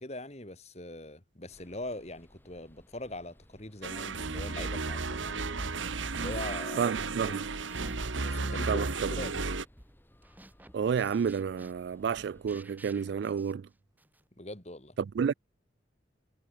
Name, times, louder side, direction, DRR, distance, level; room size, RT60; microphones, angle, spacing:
voice 1, 0.0-5.7 6.2-6.9 7.2-7.4 8.2-9.4 14.4-15.0, left 1 dB, 35° left, 3.1 m, -42 dB
sound 1, 1.5-12.6, equal, 10° left, 6.8 m, -61 dB
sound 2, 3.8-9.6, right 3 dB, 85° right, 1.5 m, -34 dB
sound 3, 5.6-8.2 8.6-14.3, right 1 dB, 10° right, 7.5 m, -56 dB
voice 2, 6.8-7.5 8.7-9.1 10.7-13.7 15.0-15.3, right 6 dB, 65° right, 0.3 m, -30 dB
head